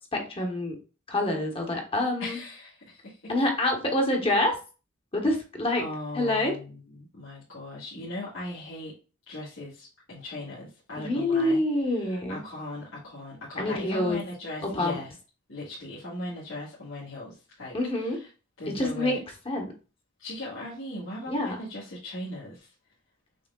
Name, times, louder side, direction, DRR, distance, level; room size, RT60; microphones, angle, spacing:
voice 1, 0.1-0.8 1.1-2.4 3.3-4.6 5.1-5.8 6.1-6.6 11.0-12.4 13.6-14.2 14.6-15.0 17.7-18.2 18.7-19.2 19.5-19.6 21.3-21.6, left 1 dB, 25° left, 2 dB, 1.2 m, -26 dB
voice 2, 2.2-3.3 5.8-8.9 9.3-11.6 11.9-15.2 15.5-18.3 18.6-19.2 20.2-22.7, left 1 dB, 75° left, -9 dB, 1.7 m, -38 dB
6.2 x 3.5 x 2.3 m, 0.34 s
head